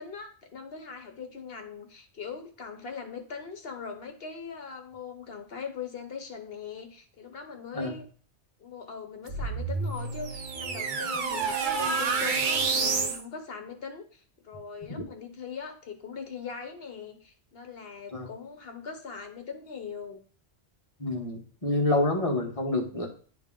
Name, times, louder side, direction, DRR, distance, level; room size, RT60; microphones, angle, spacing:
voice 1, 0.0-8.1 8.6-20.2, left 6 dB, 55° left, 5 dB, 1.1 m, -41 dB
sound 1, 9.3-13.2, right 4 dB, 50° right, 0.8 m, -28 dB
voice 2, 21.0-23.1, left 2 dB, 30° left, 0 dB, 1.2 m, -27 dB
10.5 x 3.4 x 3.7 m, 0.44 s
omnidirectional pair, 1.2 m